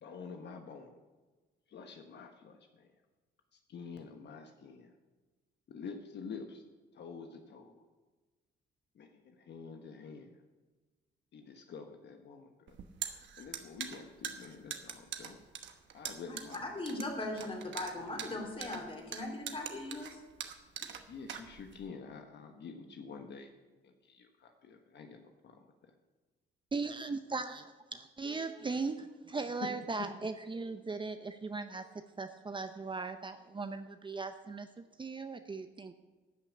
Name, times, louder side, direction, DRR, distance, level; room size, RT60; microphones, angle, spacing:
voice 1, 0.0-1.0 1.7-2.9 3.5-4.9 5.7-6.6 6.9-7.8 8.9-10.4 11.3-12.8 13.4-15.4 15.9-16.8 21.1-23.5 23.8-25.6, left 5 dB, 60° left, 4 dB, 1.2 m, -48 dB
sound 1, 12.7-21.9, right 8 dB, 65° right, 1.1 m, -43 dB
voice 2, 16.3-20.2, left 2 dB, 30° left, 2 dB, 3.1 m, -39 dB
voice 3, 26.7-35.9, right 4 dB, 25° right, 9 dB, 0.6 m, -38 dB
12.5 x 5.9 x 8.4 m, 1.3 s
cardioid pair, 90°, 20 cm